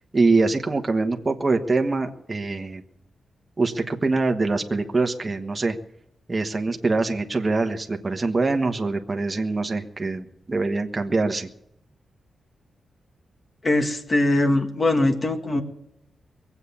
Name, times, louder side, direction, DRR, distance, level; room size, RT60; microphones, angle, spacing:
voice 1, 0.1-2.8 3.6-5.8 6.3-11.5, right 3 dB, 25° right, 4 dB, 1.3 m, -24 dB
voice 2, 13.6-15.6, left 2 dB, 30° left, 5 dB, 1.9 m, -21 dB
22.5 x 8.3 x 7.1 m, 0.78 s
wide cardioid pair, 135°, 0 cm